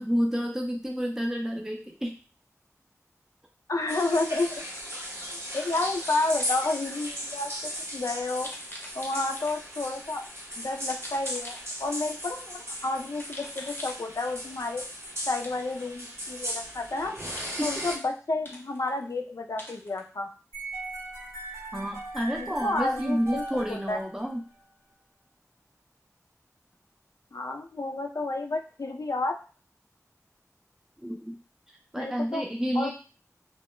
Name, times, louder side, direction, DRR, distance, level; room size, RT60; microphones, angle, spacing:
voice 1, 0.0-2.2 5.5-5.6 17.6-17.8 21.7-24.4 31.0-31.4 31.9-32.9, equal, 10° right, 1 dB, 0.4 m, -30 dB
voice 2, 3.7-4.6 4.9-5.0 5.5-8.5 9.0-10.3 10.6-14.8 15.3-17.2 17.6-20.3 22.3-23.4 23.7-24.0 27.3-29.4 31.9-32.4 32.8-32.9, left 2 dB, 70° left, 4 dB, 0.3 m, -30 dB
sound 1, 3.8-4.2 5.5-7.0 8.4-9.9 10.9-12.1 13.1-14.5 15.4-15.9 16.3-17.0 17.4-18.1 18.5-19.1 19.6-20.0, left 1 dB, 35° left, 0.6 m, -45 dB
sound 2, 3.9-18.0, equal, 50° right, 0.7 m, -37 dB
sound 3, 20.5-24.6, right 2 dB, 80° right, 1.0 m, -39 dB
2.2 x 2.0 x 3.0 m, 0.35 s
wide cardioid pair, 50°, 6 cm